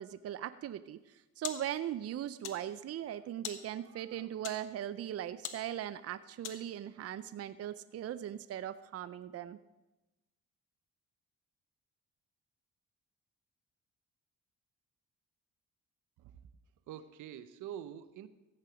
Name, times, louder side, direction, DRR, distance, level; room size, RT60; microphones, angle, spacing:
voice 1, 0.0-9.6, right 11 dB, 55° right, 14 dB, 0.5 m, -39 dB
sound 1, 0.8-6.9, left 10 dB, 90° left, 1.2 m, -48 dB
voice 2, 16.9-18.3, right 10 dB, 85° right, 13 dB, 0.8 m, -45 dB
15.0 x 8.8 x 5.0 m, 1.1 s
cardioid pair, 90°, 30 cm